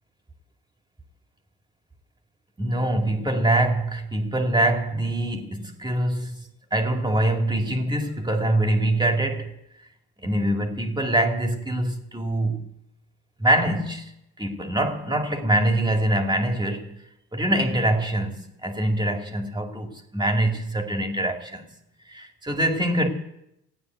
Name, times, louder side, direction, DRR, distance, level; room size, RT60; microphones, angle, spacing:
voice 1, 2.6-9.5 10.2-12.7 13.4-14.1 14.4-17.0 17.3-21.6 22.1-23.1, right 1 dB, 15° right, 2.5 m, -24 dB
15.5 x 9.4 x 9.2 m
cardioid pair, 90°, 30 cm